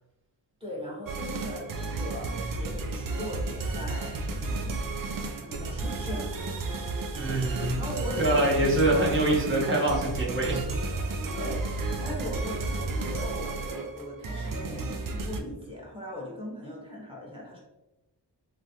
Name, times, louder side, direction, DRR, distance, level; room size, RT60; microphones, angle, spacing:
voice 1, 0.6-4.8 5.3-6.3 6.7-7.0 7.8-8.5 11.3-11.7 12.0-17.6, left 1 dB, 10° right, -4 dB, 1.2 m, -39 dB
sound 1, 1.1-15.4, right 3 dB, 50° right, 0.5 m, -32 dB
voice 2, 7.1-7.8 8.2-10.6, right 1 dB, 25° right, -4 dB, 1.0 m, -25 dB
3.1 x 2.3 x 2.7 m, 0.98 s
cardioid pair, 45°, 44 cm